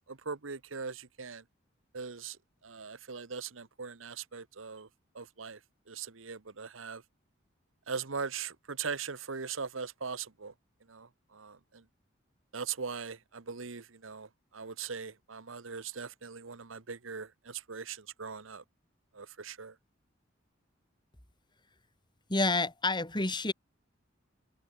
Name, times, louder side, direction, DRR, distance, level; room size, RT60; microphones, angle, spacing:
voice 1, 0.1-1.4 1.9-2.4 2.6-4.9 5.1-5.6 5.9-7.0 7.9-10.5 10.9-11.8 12.5-18.6 19.1-19.8, right 5 dB, 80° right, 1.2 m, -40 dB
voice 2, 22.3-23.5, left 2 dB, 25° left, 4.1 m, -29 dB
head